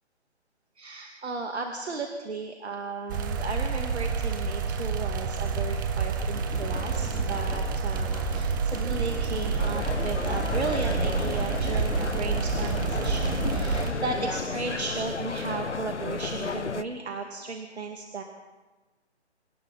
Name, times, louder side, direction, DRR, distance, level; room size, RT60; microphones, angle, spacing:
voice 1, 0.8-18.2, right 3 dB, 70° right, 3 dB, 2.5 m, -35 dB
sound 1, 3.1-13.9, right 5 dB, 20° right, 1.0 m, -29 dB
sound 2, 6.3-14.5, left 2 dB, 5° left, 4.3 m, -40 dB
sound 3, 9.6-16.8, left 4 dB, 85° left, 1.3 m, -33 dB
27.5 x 27.0 x 4.3 m, 1.2 s
figure-of-eight pair, 150°, 34 cm